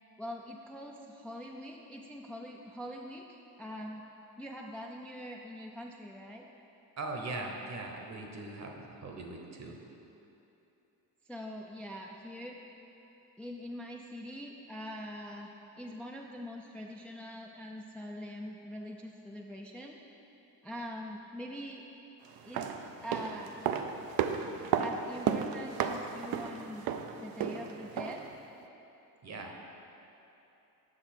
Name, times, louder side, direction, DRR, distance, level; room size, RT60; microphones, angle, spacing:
voice 1, 0.2-4.1 4.4-6.5 11.2-12.6 13.4-20.0 20.6-21.9 22.4-22.7 23.0-23.7 24.8-26.9 27.2-28.2, equal, 5° left, 0 dB, 0.3 m, -43 dB
voice 2, 7.0-9.8 29.2-29.5, right 2 dB, 45° right, 2 dB, 1.0 m, -40 dB
sound 1, 22.3-28.3 28.6-28.7, right 7 dB, 70° right, 0.5 m, -34 dB
7.6 x 5.7 x 4.5 m, 3.0 s
cardioid pair, 105°, 37 cm